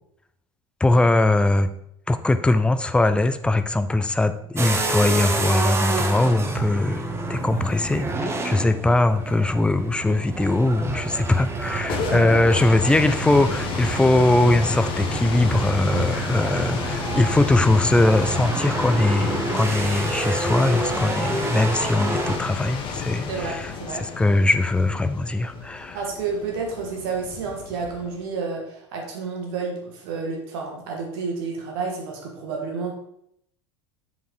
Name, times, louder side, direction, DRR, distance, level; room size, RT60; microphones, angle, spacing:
voice 1, 0.8-1.7 2.1-7.0 7.3-26.0, left 2 dB, 5° left, 11 dB, 0.5 m, -21 dB
sound 1, 4.6-22.4, right 3 dB, 15° right, 1.1 m, -28 dB
sound 2, 11.6-28.3, left 6 dB, 35° left, 1.1 m, -32 dB
voice 2, 12.0-12.4 15.9-16.1 23.3-24.0 25.9-32.9, right 4 dB, 55° right, 1 dB, 2.0 m, -30 dB
7.3 x 5.3 x 4.8 m, 0.74 s
figure-of-eight pair, 75°, 15 cm